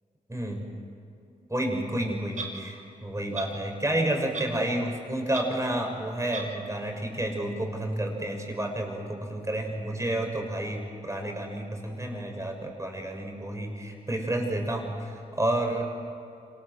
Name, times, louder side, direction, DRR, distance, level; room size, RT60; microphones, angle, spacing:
voice 1, 0.3-0.7 1.5-15.8, right 1 dB, 20° right, 2 dB, 6.8 m, -30 dB
Clock, 2.3-2.5 3.3-3.5 4.3-4.6 4.9-5.0 5.3-5.5 6.3-6.5, right 3 dB, 50° right, 6.2 m, -35 dB
26.5 x 19.5 x 7.9 m, 2.6 s
cardioid pair, 50°, 16 cm